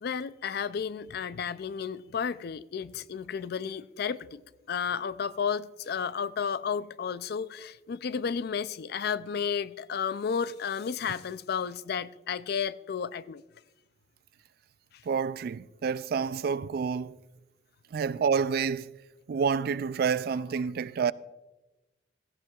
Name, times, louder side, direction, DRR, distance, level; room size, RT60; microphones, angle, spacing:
voice 1, 0.0-4.4 4.7-13.4, left 6 dB, 60° left, 0.4 m, -32 dB
voice 2, 15.1-17.2 17.9-18.9 19.3-21.1, right 6 dB, 55° right, 0.3 m, -28 dB
16.5 x 14.5 x 2.4 m
head